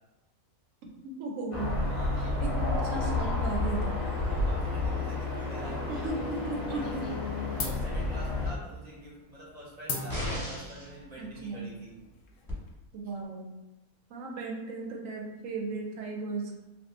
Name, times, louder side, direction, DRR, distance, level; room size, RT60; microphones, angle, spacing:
voice 1, 1.0-1.8 2.4-4.0 5.9-7.1 11.2-11.7 12.9-13.5 14.1-16.6, right 3 dB, 70° right, 0 dB, 0.9 m, -36 dB
sound 1, 1.5-8.5, left 2 dB, 30° left, 0.7 m, -30 dB
voice 2, 1.8-2.6 4.2-6.1 6.7-11.9, right 1 dB, 35° right, -6 dB, 0.7 m, -47 dB
sound 2, 6.3-6.5 6.8-7.2 7.6-12.7, left 3 dB, 65° left, 0.9 m, -41 dB
sound 3, 10.1-10.9 12.5-12.6, left 1 dB, ahead, 1.0 m, -34 dB
2.9 x 2.3 x 3.2 m, 1.0 s
omnidirectional pair, 1.5 m